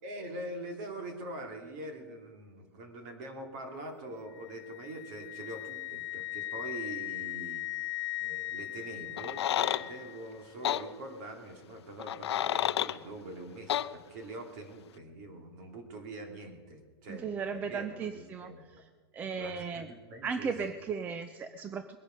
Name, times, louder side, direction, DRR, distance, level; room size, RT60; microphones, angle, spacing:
voice 1, 0.0-7.7 8.2-18.6 19.4-20.6, right 1 dB, 45° right, 4 dB, 2.8 m, -44 dB
Wind instrument woodwind instrument, 4.3-10.3, left 18 dB, 55° left, 0.8 m, -39 dB
sound 1, 9.2-9.8 10.6-10.8 12.0-13.0 13.7-13.9, left 11 dB, 90° left, 0.6 m, -29 dB
voice 2, 17.1-18.5 18.8-18.9 19.1-19.9 20.2-22.0, right 5 dB, 10° right, 10 dB, 0.4 m, -36 dB
21.0 x 10.5 x 5.3 m, 1.5 s
supercardioid pair, 165°, 13 cm